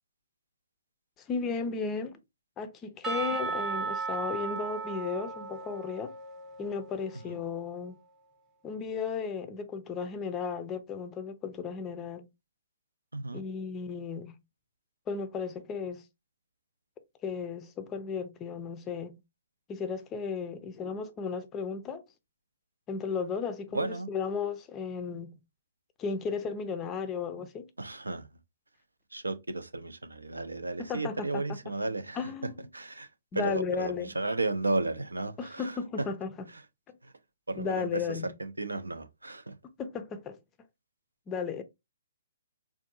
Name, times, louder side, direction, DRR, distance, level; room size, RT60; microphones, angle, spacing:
voice 1, 1.3-2.2 2.6-6.1 6.6-8.0 8.6-12.3 13.3-14.4 15.1-16.0 17.2-19.2 19.7-22.0 22.9-25.4 26.0-27.7 30.9-31.4 32.2-32.6 33.3-34.1 35.4-36.5 37.6-38.3 39.8-40.4 41.3-41.6, left 5 dB, 20° left, 0.4 m, -35 dB
Percussion / Church bell, 3.0-7.4, right 4 dB, 15° right, 0.8 m, -36 dB
voice 2, 13.1-13.4 23.7-24.1 27.8-28.3 29.1-36.1 36.5-36.7 37.0-37.1 37.5-39.6, right 2 dB, 85° right, 0.5 m, -34 dB
3.5 x 2.6 x 2.6 m
figure-of-eight pair, 130°, 0 cm